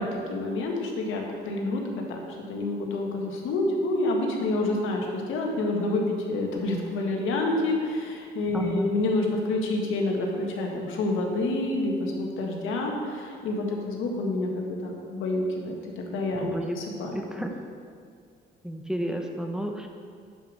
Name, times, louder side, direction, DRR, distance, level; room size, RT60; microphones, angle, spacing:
voice 1, 0.0-2.2 2.5-16.5 16.7-17.4, left 2 dB, 85° left, 1 dB, 1.6 m, -28 dB
voice 2, 8.5-8.9 16.4-16.8 17.3-17.5 18.6-19.9, equal, 5° right, 3 dB, 1.0 m, -31 dB
9.8 x 5.1 x 6.4 m, 2.3 s
cardioid pair, 90°, 20 cm